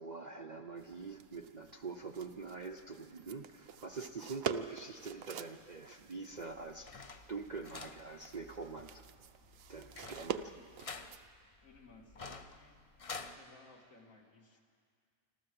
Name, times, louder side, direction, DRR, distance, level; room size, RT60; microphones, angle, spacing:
voice 1, 0.0-9.0 9.7-10.5, right 4 dB, 45° right, 4 dB, 0.7 m, -45 dB
sound 1, 0.8-11.3, right 8 dB, 75° right, 1.1 m, -46 dB
sound 2, 6.3-13.4, left 4 dB, 40° left, 0.5 m, -50 dB
voice 2, 11.4-12.9 13.3-14.6, left 3 dB, 70° left, 0 dB, 2.5 m, -60 dB
26.0 x 13.5 x 7.7 m, 2.1 s
omnidirectional pair, 1.5 m